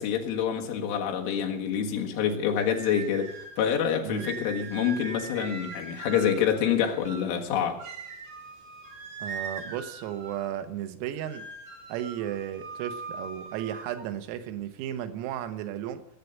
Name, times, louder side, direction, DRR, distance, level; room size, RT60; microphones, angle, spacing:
voice 1, 0.0-7.8, left 8 dB, 75° left, 2 dB, 4.1 m, -27 dB
sound 1, 2.6-3.6 4.2-7.3 7.8-10.5 11.2-14.0, right 5 dB, 45° right, 3.9 m, -41 dB
voice 2, 4.0-4.4 9.2-11.5 11.9-16.1, right 11 dB, 90° right, 9 dB, 3.9 m, -34 dB
19.0 x 8.4 x 8.0 m, 0.77 s
omnidirectional pair, 5.9 m